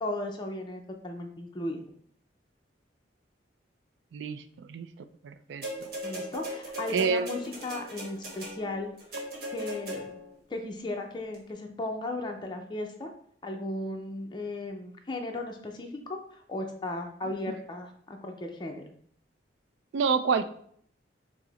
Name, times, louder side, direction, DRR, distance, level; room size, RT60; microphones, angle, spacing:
voice 1, 0.0-1.8 6.0-8.9 9.5-10.2 10.5-13.1 13.4-18.9, left 2 dB, 25° left, 2 dB, 0.4 m, -36 dB
voice 2, 4.1-4.9 5.2-5.7 6.9-7.3 19.9-20.4, right 5 dB, 75° right, 10 dB, 0.3 m, -27 dB
sound 1, 5.6-10.4 11.3-11.4, equal, 55° right, 1.1 m, -38 dB
4.7 x 2.0 x 3.9 m, 0.62 s
head